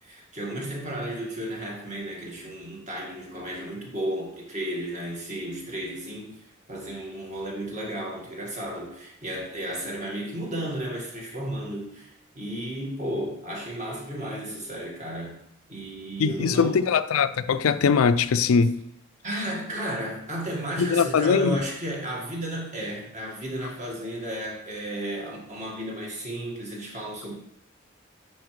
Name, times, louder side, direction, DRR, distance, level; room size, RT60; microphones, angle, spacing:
voice 1, 0.0-15.4 15.7-16.9 19.2-27.3, right 1 dB, 35° right, 1.7 m, -33 dB
voice 2, 16.2-18.8 20.8-21.6, left 6 dB, 90° left, 0.4 m, -21 dB
9.8 x 4.6 x 3.2 m
head